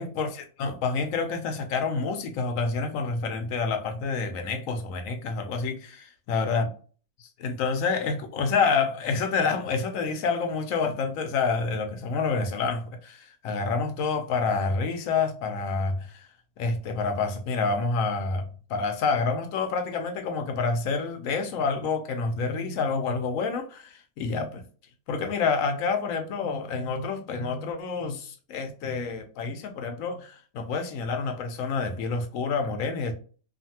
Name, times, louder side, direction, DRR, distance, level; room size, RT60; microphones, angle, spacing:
voice 1, 0.0-6.7 7.2-16.3 16.6-24.6 25.1-33.1, left 4 dB, 75° left, 1.0 m, -28 dB
2.6 x 2.5 x 2.7 m
omnidirectional pair, 1.5 m